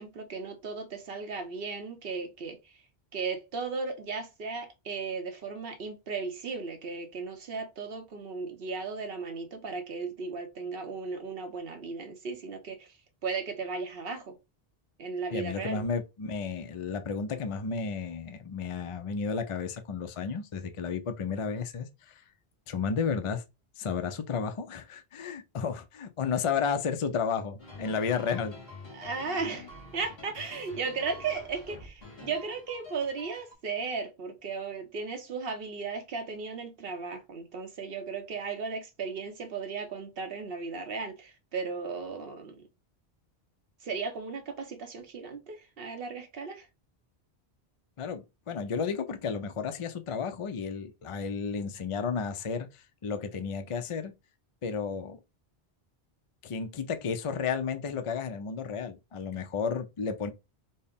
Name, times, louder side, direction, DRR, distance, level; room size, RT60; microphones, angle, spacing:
voice 1, 0.0-2.8 3.1-13.0 13.2-14.4 15.0-15.8 28.9-42.7 43.8-46.7, right 4 dB, 65° right, 0.9 m, -36 dB
voice 2, 15.3-22.2 22.7-23.4 23.8-28.6 48.0-54.1 54.6-55.2 56.4-60.3, left 5 dB, 45° left, 0.4 m, -32 dB
sound 1, 27.6-33.5, left 3 dB, 65° left, 1.9 m, -47 dB
4.2 x 2.1 x 3.5 m
omnidirectional pair, 1.1 m